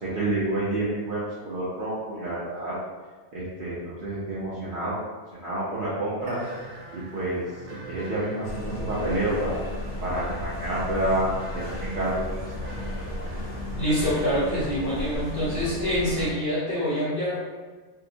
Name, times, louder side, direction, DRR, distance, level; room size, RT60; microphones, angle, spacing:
voice 1, 0.0-2.7 3.3-5.0 5.3-6.4 6.9-7.4 7.9-9.6 10.0-12.4, right 1 dB, 55° right, -9 dB, 0.7 m, -29 dB
sound 1, 6.2-15.2, right 3 dB, 75° right, 1.2 m, -44 dB
sound 2, 8.4-16.3, left 1 dB, 85° left, 0.9 m, -34 dB
voice 2, 13.8-17.4, equal, 55° left, -8 dB, 0.7 m, -26 dB
2.7 x 2.1 x 2.6 m, 1.4 s
omnidirectional pair, 1.2 m